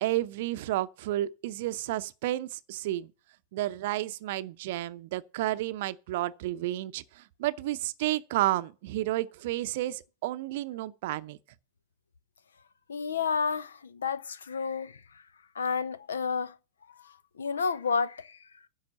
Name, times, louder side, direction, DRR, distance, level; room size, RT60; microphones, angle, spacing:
voice 1, 0.0-3.1 3.5-7.0 7.4-11.4, right 15 dB, 50° right, 0.6 m, -31 dB
voice 2, 12.9-15.0 15.5-16.5 16.9-18.4, left 5 dB, 70° left, 0.6 m, -31 dB
10.5 x 6.4 x 7.4 m
figure-of-eight pair, 90°, 0 cm